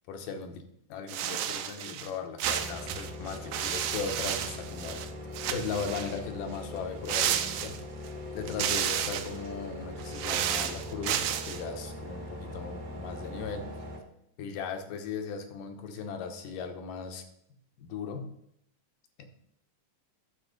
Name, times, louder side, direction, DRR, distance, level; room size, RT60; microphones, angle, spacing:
voice 1, 0.1-0.6 0.9-5.0 5.5-7.8 8.3-13.7 14.4-17.2 17.8-18.3 19.2-19.3, left 5 dB, 80° left, 6 dB, 2.7 m, -37 dB
sound 1, 1.1-2.1 2.4-5.1 5.3-6.2 7.1-8.1 8.5-9.4 10.0-11.6, right 10 dB, 90° right, 2.5 m, -32 dB
sound 2, 2.4-14.0, left 1 dB, 35° right, 1.4 m, -41 dB
9.8 x 7.1 x 5.1 m, 0.73 s
omnidirectional pair, 3.9 m